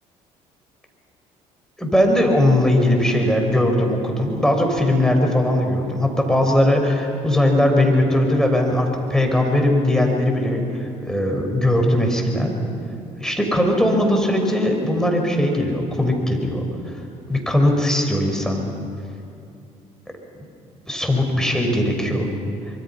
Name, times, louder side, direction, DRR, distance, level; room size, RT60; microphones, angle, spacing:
voice 1, 1.8-12.5 13.2-16.6 17.3-18.6 20.9-22.3, left 1 dB, 5° left, 2 dB, 6.0 m, -19 dB
25.5 x 23.5 x 6.0 m, 2.6 s
hypercardioid pair, 55°, 18 cm